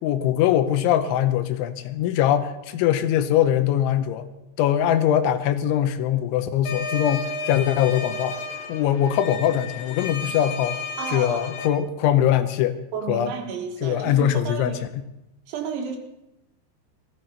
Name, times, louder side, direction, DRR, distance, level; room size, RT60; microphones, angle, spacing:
voice 1, 0.0-4.3 4.6-8.4 8.7-10.8 11.1-12.8 13.1-13.3 13.8-14.8, left 10 dB, 85° left, 10 dB, 3.2 m, -22 dB
sound 1, 6.6-11.7, left 4 dB, 70° left, 2.0 m, -33 dB
voice 2, 11.0-11.5 12.9-14.9 15.5-16.0, right 6 dB, 75° right, 3 dB, 3.9 m, -32 dB
19.5 x 14.0 x 4.0 m, 0.91 s
omnidirectional pair, 5.5 m